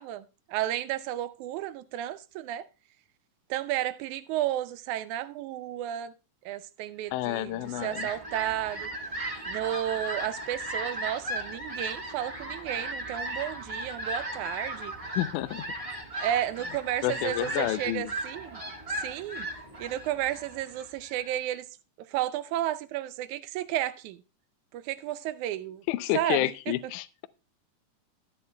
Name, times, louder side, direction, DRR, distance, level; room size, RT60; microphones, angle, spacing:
voice 1, 0.0-2.7 3.5-6.1 6.4-8.9 9.5-14.9 16.2-18.6 18.9-19.5 19.8-21.7 22.1-24.2 24.7-25.8 26.1-26.7, right 12 dB, 80° right, 2.0 m, -32 dB
voice 2, 7.1-8.1 15.1-15.6 17.0-18.1 25.9-27.3, left 16 dB, 80° left, 2.0 m, -30 dB
Fowl, 7.3-21.3, right 1 dB, 45° right, 0.4 m, -37 dB
13.0 x 9.3 x 2.2 m
omnidirectional pair, 3.6 m